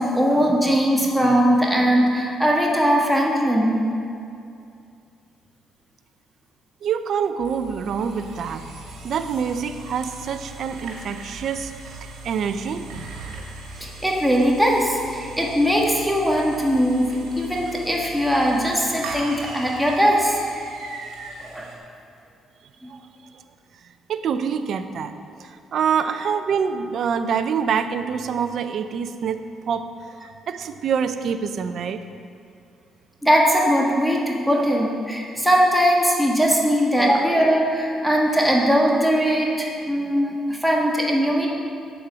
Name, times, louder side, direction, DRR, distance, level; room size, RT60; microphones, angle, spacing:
voice 1, 0.0-3.8 13.8-20.4 21.4-21.7 22.8-22.9 33.2-41.5, equal, ahead, -2 dB, 1.7 m, -20 dB
voice 2, 6.8-8.6 9.0-12.9 13.4-13.5 22.9-23.0 24.1-25.1 25.4-29.9 30.2-32.1, right 7 dB, 65° right, 10 dB, 0.6 m, -26 dB
sound 1, 7.4-21.8, right 2 dB, 80° right, 2.2 m, -39 dB
8.3 x 7.9 x 6.2 m, 2.5 s
cardioid pair, 80°, 0 cm